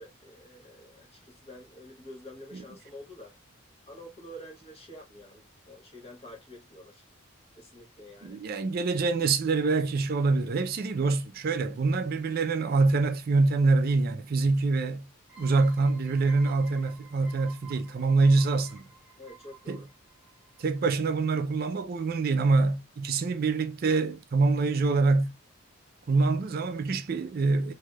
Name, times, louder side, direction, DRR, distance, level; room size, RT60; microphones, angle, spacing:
voice 1, 0.0-3.3 3.9-7.0 7.6-8.4 19.2-19.8, equal, 30° left, 1.0 m, -48 dB
voice 2, 8.2-15.1 15.4-18.8 19.7-19.8 20.6-25.4 26.1-27.7, right 3 dB, 45° right, 0.4 m, -25 dB
sound 1, 15.3-20.8, right 4 dB, 5° right, 1.0 m, -52 dB
3.3 x 2.7 x 2.2 m
head